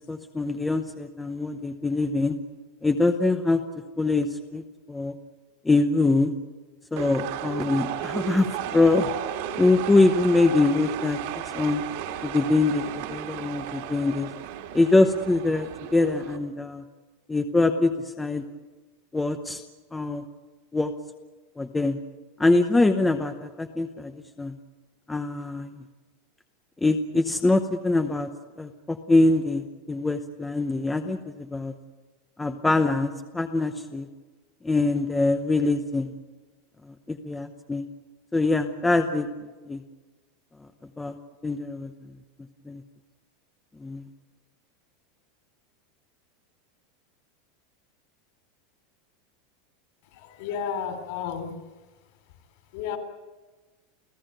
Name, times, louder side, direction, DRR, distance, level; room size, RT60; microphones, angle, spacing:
voice 1, 0.1-2.4 2.8-3.6 4.0-4.6 4.9-5.1 5.6-6.3 6.9-9.1 9.6-11.2 11.5-11.8 12.2-14.3 14.7-16.8 17.3-17.9 18.2-18.4 19.1-19.6 19.9-20.2 20.7-20.9 21.6-22.0 22.4-24.6 25.1-25.7 26.8-28.3 28.6-31.7 32.4-34.1 34.6-36.1 36.9-37.8 38.3-39.3 39.6-39.8 41.0-41.2 41.4-41.9 42.7-42.8 43.8-44.1, left 2 dB, 5° left, 6 dB, 0.8 m, -23 dB
sound 1, 7.0-16.4, right 10 dB, 55° right, 2.5 m, -34 dB
voice 2, 50.1-51.5 52.7-53.0, left 7 dB, 50° left, 6 dB, 3.9 m, -32 dB
30.0 x 16.0 x 9.0 m, 1.3 s
supercardioid pair, 180°, 0 cm